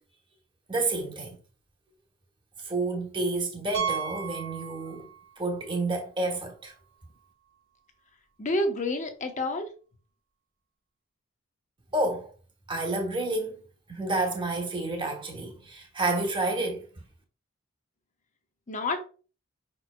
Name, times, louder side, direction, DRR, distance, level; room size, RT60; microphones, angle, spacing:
voice 1, 0.7-1.4 2.6-5.1 5.4-6.7 11.9-12.3 12.7-13.6 13.9-16.9, right 2 dB, 25° right, 1.1 m, -29 dB
Piano, 3.7-5.3 5.6-5.8 6.4-6.5 6.7-6.8 8.9-9.0, right 8 dB, 70° right, 1.4 m, -34 dB
voice 2, 8.4-9.7 18.7-19.0, left 2 dB, 40° left, 0.8 m, -28 dB
5.3 x 4.5 x 2.2 m
head